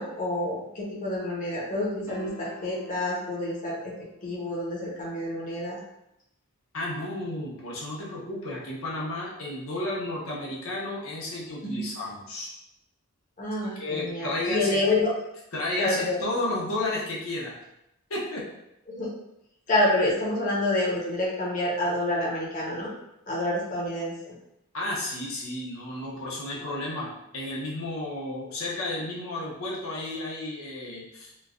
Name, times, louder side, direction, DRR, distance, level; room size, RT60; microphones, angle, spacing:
voice 1, 0.0-3.8 4.2-5.8 11.6-11.8 13.4-15.1 15.8-16.2 18.9-19.1 19.7-22.9 23.3-24.1, left 1 dB, 40° left, -5 dB, 0.8 m, -28 dB
sound 1, 2.1-4.5, left 3 dB, 10° right, 0.5 m, -47 dB
voice 2, 6.7-12.5 13.8-14.8 15.5-17.5 18.1-18.4 24.7-31.3, left 2 dB, 70° left, -4 dB, 0.8 m, -32 dB
3.0 x 2.2 x 2.4 m, 0.83 s
head